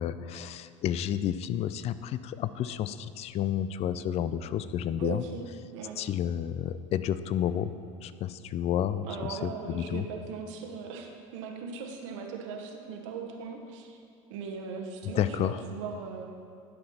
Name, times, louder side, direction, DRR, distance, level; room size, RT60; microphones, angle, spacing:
voice 1, 0.0-5.2 6.0-7.7 8.0-10.0 15.2-15.6, left 10 dB, 40° left, 14 dB, 0.4 m, -31 dB
voice 2, 5.0-5.4 5.7-6.0 9.0-14.0 14.3-16.3, right 5 dB, 70° right, 2 dB, 1.1 m, -39 dB
11.5 x 5.7 x 4.2 m, 2.4 s
hypercardioid pair, 85°, 16 cm